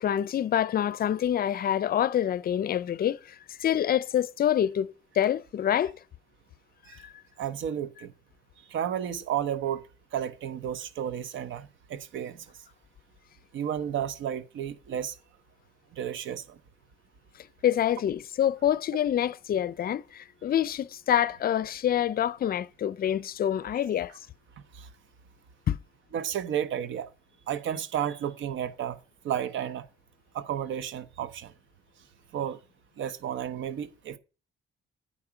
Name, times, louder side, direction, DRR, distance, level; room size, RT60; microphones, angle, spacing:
voice 1, 0.0-5.9 7.0-7.1 17.6-24.1 25.7-25.8, left 10 dB, 50° left, 0.5 m, -26 dB
voice 2, 7.4-8.1 8.7-9.8 10.1-12.5 13.5-15.2 15.9-16.6 24.7-24.9 26.1-27.1 27.5-29.0 29.2-29.9 30.3-31.5 32.3-32.6 33.0-34.2, right 9 dB, 75° right, 0.9 m, -32 dB
8.6 x 4.9 x 5.8 m
cardioid pair, 90°, 20 cm